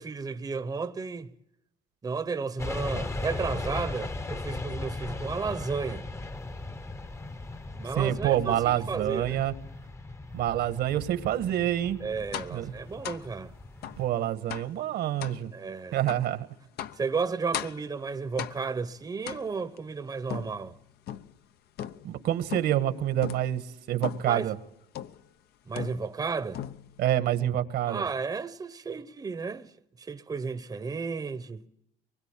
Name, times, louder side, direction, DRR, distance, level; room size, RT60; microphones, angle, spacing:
voice 1, 0.0-1.3 2.0-6.1 7.8-9.4 12.0-13.5 15.5-16.0 16.9-20.8 24.3-24.5 25.7-26.6 27.9-29.7 30.0-31.6, right 4 dB, 20° right, 0.9 m, -33 dB
sound 1, 2.6-14.1, left 2 dB, 15° left, 0.9 m, -38 dB
voice 2, 8.0-9.5 10.3-12.0 12.5-12.7 14.0-15.5 15.9-16.5 22.0-23.6 23.9-24.6 27.0-28.0, right 12 dB, 75° right, 1.7 m, -27 dB
sound 2, 12.3-12.6 13.0-13.3 13.8-14.1 14.5-14.8 15.2-15.4 16.1-16.3 16.8-17.1 17.5-17.9 18.4-18.8 19.3-19.8 20.3-21.4 21.8-22.2 22.5-22.9 23.2-23.5 24.0-24.4 25.0-25.3 25.8-26.3 26.5-27.0, left 10 dB, 70° left, 0.9 m, -38 dB
23.5 x 21.0 x 8.5 m
cardioid pair, 110°, 17 cm